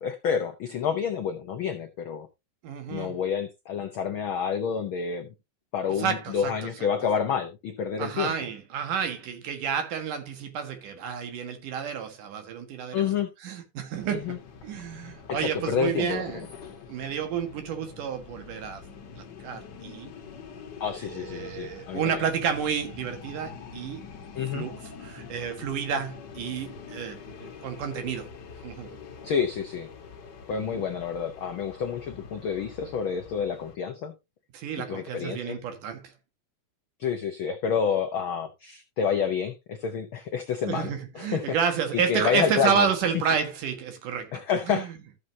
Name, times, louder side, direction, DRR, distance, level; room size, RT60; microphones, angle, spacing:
voice 1, 0.0-2.3 2.9-5.3 5.7-8.3 12.9-13.3 14.1-14.4 15.3-16.5 20.8-22.0 24.3-24.7 29.2-29.9 30.5-34.1 34.9-35.6 37.0-41.6 41.9-42.9 44.3-44.9, left 7 dB, 85° left, 1.1 m, -29 dB
voice 2, 2.6-3.2 6.0-6.7 8.0-13.0 13.4-16.5 16.9-18.8 19.2-20.1 21.0-24.0 24.5-28.3 28.6-29.0 30.5-30.8 34.5-36.1 40.6-44.9, right 7 dB, 90° right, 3.2 m, -30 dB
sound 1, 13.9-33.8, left 6 dB, 50° left, 1.4 m, -45 dB
14.0 x 6.6 x 2.8 m
omnidirectional pair, 3.6 m